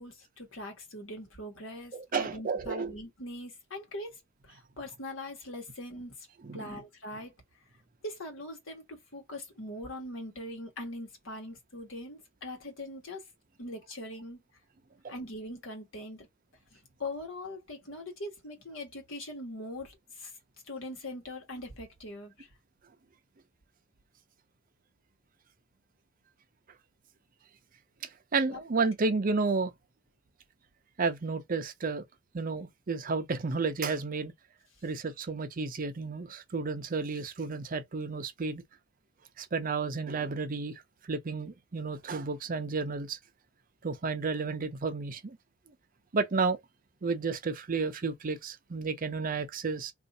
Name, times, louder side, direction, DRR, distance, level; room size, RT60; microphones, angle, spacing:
voice 1, 0.0-4.2 4.5-6.3 6.5-7.3 8.0-13.2 13.6-14.4 15.1-16.3 16.7-20.3 20.7-22.5 28.5-28.6, left 1 dB, 70° left, 1.3 m, -41 dB
voice 2, 1.9-2.9 6.4-6.8 15.0-15.1 28.3-29.7 31.0-32.0 32.3-34.3 34.8-38.6 39.4-43.2 43.8-45.4 46.1-46.6 47.0-49.9, right 4 dB, 45° right, 0.5 m, -32 dB
2.6 x 2.4 x 3.9 m
head